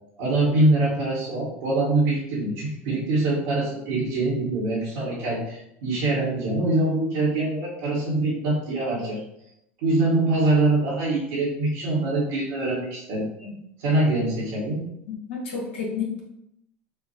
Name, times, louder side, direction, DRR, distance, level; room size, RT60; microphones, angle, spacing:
voice 1, 0.2-9.2 9.8-14.8, right 2 dB, 75° right, -10 dB, 1.5 m, -24 dB
voice 2, 15.1-16.2, left 5 dB, 75° left, -3 dB, 1.6 m, -30 dB
5.7 x 2.5 x 2.9 m, 0.82 s
hypercardioid pair, 85°, 7 cm